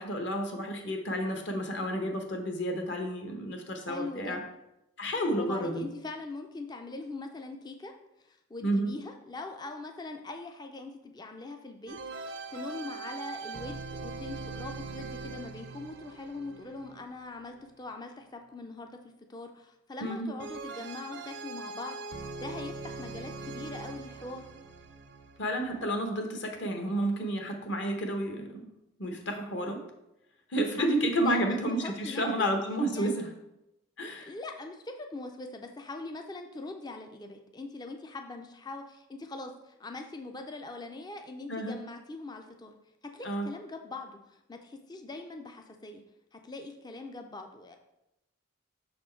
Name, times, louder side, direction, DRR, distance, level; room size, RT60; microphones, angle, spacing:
voice 1, 0.0-4.4 5.0-5.8 8.6-8.9 20.0-20.3 25.4-28.6 29.0-29.8 30.5-33.3 34.0-34.3 41.5-41.8 43.2-43.5, right 1 dB, 55° left, 3 dB, 1.0 m, -31 dB
voice 2, 3.9-4.4 5.3-7.9 8.2-19.0 19.3-22.0 22.4-24.5 30.7-32.5 32.9-33.2 34.2-42.7 43.1-46.0 46.3-47.8, left 2 dB, 20° left, 4 dB, 0.4 m, -42 dB
sound 1, 11.9-18.0 20.4-25.8, right 4 dB, 55° right, 0.5 m, -42 dB
6.2 x 4.3 x 4.4 m, 0.88 s
head